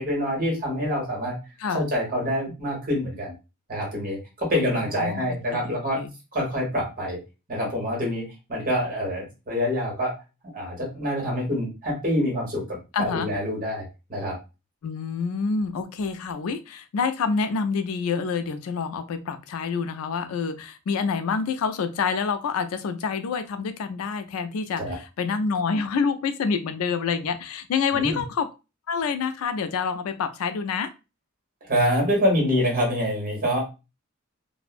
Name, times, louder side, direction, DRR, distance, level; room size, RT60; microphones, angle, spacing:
voice 1, 0.0-1.4 1.7-3.3 3.7-6.0 6.3-7.2 7.5-10.1 10.5-14.4 24.8-24.9 27.9-28.2 31.6-33.6, equal, 40° right, -2 dB, 1.2 m, -26 dB
voice 2, 4.5-5.3 5.5-6.1 12.9-13.3 14.8-28.5 28.9-30.9, left 5 dB, 85° left, 9 dB, 0.4 m, -27 dB
2.5 x 2.0 x 2.4 m, 0.29 s
head